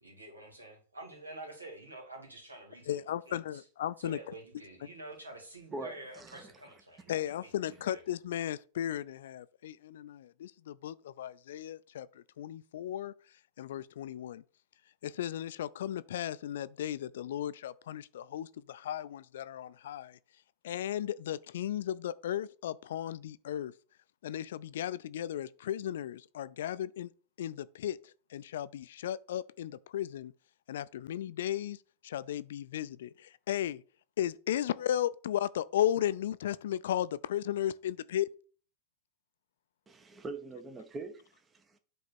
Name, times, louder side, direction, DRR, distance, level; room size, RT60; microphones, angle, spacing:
voice 1, 0.0-3.0 3.3-3.7 4.0-8.0, right 2 dB, 80° right, 2.2 m, -48 dB
voice 2, 2.9-4.2 7.1-12.1 12.4-13.1 13.6-14.4 15.0-20.2 20.6-23.7 24.2-27.1 27.4-28.0 28.3-30.3 30.7-31.8 32.0-33.8 34.2-38.3, left 11 dB, 60° left, 0.4 m, -35 dB
voice 3, 5.7-6.5 39.9-41.8, right 2 dB, 20° right, 0.8 m, -43 dB
8.6 x 3.2 x 4.4 m
figure-of-eight pair, 90°, 0 cm